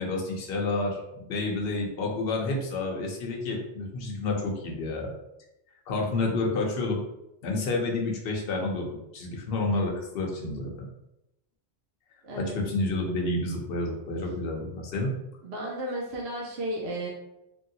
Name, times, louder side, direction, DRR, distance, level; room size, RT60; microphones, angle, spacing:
voice 1, 0.0-5.1 5.9-7.0 7.4-10.7 12.4-15.1, left 2 dB, 60° left, 0 dB, 0.8 m, -29 dB
voice 2, 12.2-12.6 15.0-15.1 15.4-17.1, right 1 dB, 70° right, -3 dB, 0.9 m, -33 dB
3.0 x 2.6 x 2.7 m, 0.88 s
omnidirectional pair, 1.2 m